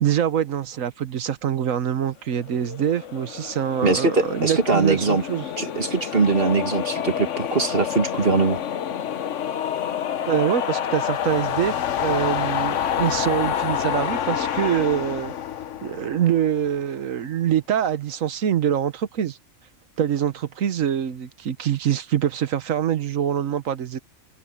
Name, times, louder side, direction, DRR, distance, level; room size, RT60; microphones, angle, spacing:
voice 1, 0.0-5.5 10.3-15.3 15.8-19.4 20.0-24.0, right 9 dB, 75° right, 1.4 m, -24 dB
sound 1, 2.5-16.8, left 9 dB, 65° left, 1.1 m, -28 dB
voice 2, 3.8-5.2 5.6-8.6, right 4 dB, 45° right, 2.2 m, -21 dB
open air
omnidirectional pair, 1.4 m